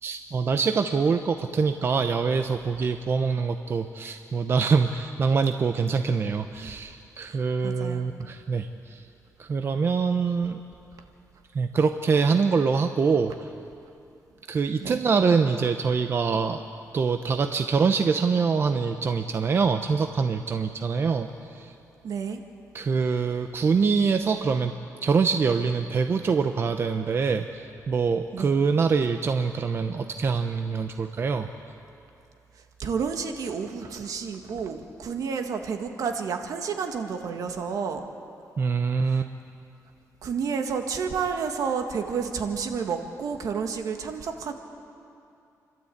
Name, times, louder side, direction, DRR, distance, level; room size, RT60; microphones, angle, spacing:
voice 1, 0.0-9.0 9.4-10.6 11.5-13.5 14.5-16.6 16.9-21.7 22.7-24.7 25.0-31.5 38.6-39.3, right 5 dB, 40° right, 7 dB, 0.7 m, -24 dB
voice 2, 7.2-8.1 14.8-15.0 22.0-22.4 28.3-28.5 32.8-38.0 40.2-44.5, right 6 dB, 70° right, 5 dB, 1.8 m, -30 dB
29.5 x 12.5 x 8.7 m, 2.6 s
cardioid pair, 135°, 6 cm